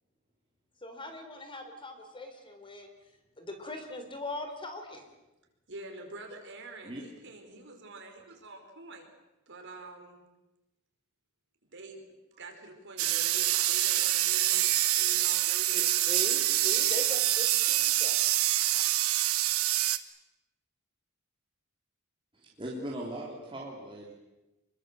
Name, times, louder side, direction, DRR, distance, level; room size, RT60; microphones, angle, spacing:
voice 1, 0.8-2.9 3.4-5.0 15.7-18.2, left 1 dB, 25° left, 6 dB, 4.0 m, -40 dB
voice 2, 5.7-9.1 9.5-10.2 11.7-12.0 12.4-15.9, right 2 dB, 60° right, 3 dB, 5.4 m, -46 dB
sound 1, 13.0-20.0, right 14 dB, 85° right, 1.3 m, -26 dB
voice 3, 22.3-24.1, right 1 dB, 25° right, -3 dB, 3.5 m, -39 dB
26.5 x 23.0 x 7.8 m, 1.0 s
head